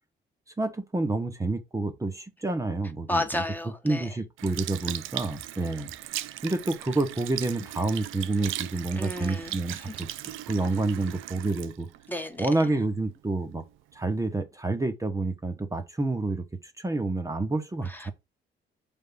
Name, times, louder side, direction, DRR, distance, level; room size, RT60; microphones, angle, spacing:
voice 1, 0.6-3.4 3.8-5.9 6.4-10.1 10.5-11.9 12.4-13.6 13.9-18.1, right 2 dB, 15° right, 1.0 m, -29 dB
voice 2, 3.1-4.1 8.9-10.0 12.1-12.5 17.8-18.1, left 1 dB, 10° left, 1.0 m, -33 dB
Sink (filling or washing) / Liquid, 4.4-13.0 13.6-13.7, right 14 dB, 85° right, 0.5 m, -38 dB
5.2 x 3.6 x 5.4 m
cardioid pair, 90°, 20 cm